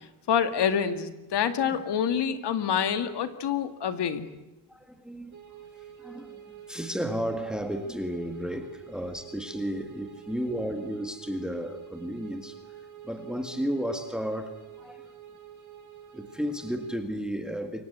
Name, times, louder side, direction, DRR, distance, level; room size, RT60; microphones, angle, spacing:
voice 1, 0.3-4.3, left 8 dB, 85° left, 9 dB, 2.3 m, -27 dB
voice 2, 4.7-5.4 6.0-12.6 13.0-15.1 16.1-17.8, equal, ahead, 6 dB, 1.9 m, -33 dB
sound 1, 5.3-17.0, right 9 dB, 45° right, 4.3 m, -48 dB
29.0 x 24.0 x 8.3 m, 1.0 s
wide cardioid pair, 175°, 40 cm